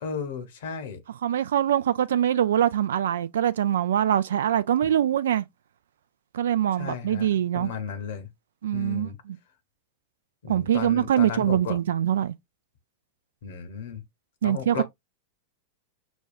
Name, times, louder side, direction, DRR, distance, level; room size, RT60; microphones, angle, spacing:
voice 1, 0.0-1.0 4.8-4.9 6.8-7.3 7.5-8.3 8.7-9.2 10.4-11.8 13.4-14.0 14.4-14.8, left 6 dB, 60° left, 1.0 m, -34 dB
voice 2, 1.2-5.5 6.3-7.7 8.6-9.1 10.5-12.3 14.4-14.8, right 10 dB, 60° right, 0.3 m, -23 dB
6.2 x 2.3 x 2.4 m
figure-of-eight pair, 90°, 0 cm